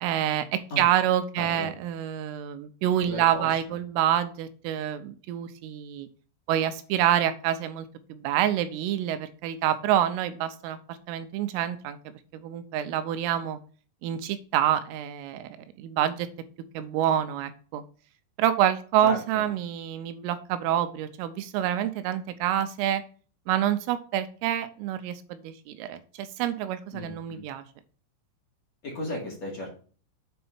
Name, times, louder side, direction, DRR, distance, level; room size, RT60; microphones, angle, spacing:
voice 1, 0.0-6.1 6.5-12.0 12.3-13.6 14.0-16.3 16.7-17.8 18.4-23.0 23.5-27.6, right 11 dB, 85° right, 10 dB, 3.3 m, -27 dB
voice 2, 1.4-1.7 3.0-3.5 19.0-19.2 26.9-27.4 28.8-29.7, left 1 dB, 45° left, -3 dB, 2.5 m, -35 dB
8.2 x 4.3 x 5.4 m, 0.40 s
omnidirectional pair, 5.7 m